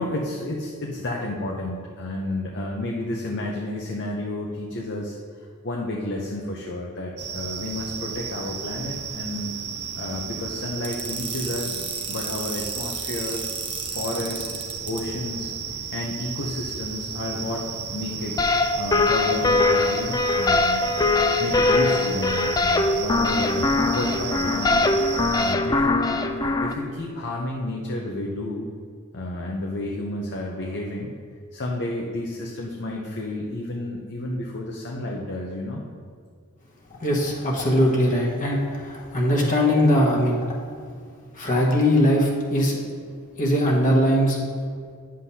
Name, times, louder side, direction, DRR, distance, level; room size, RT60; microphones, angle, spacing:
voice 1, 0.0-9.5 9.9-13.5 13.9-17.6 17.9-18.5 18.8-20.8 21.4-24.8 25.4-28.6 29.1-31.1 31.5-35.8, left 1 dB, 55° left, -1 dB, 0.7 m, -31 dB
sound 1, 7.2-25.5, right 7 dB, 85° right, 0.7 m, -34 dB
sound 2, 10.8-15.0, right 4 dB, 25° right, 0.8 m, -33 dB
sound 3, 18.4-26.7, left 3 dB, 15° left, 0.4 m, -22 dB
voice 2, 37.0-40.5 41.4-42.8 43.4-44.4, equal, 35° left, -4 dB, 1.3 m, -20 dB
10.0 x 7.5 x 2.8 m, 2.1 s
head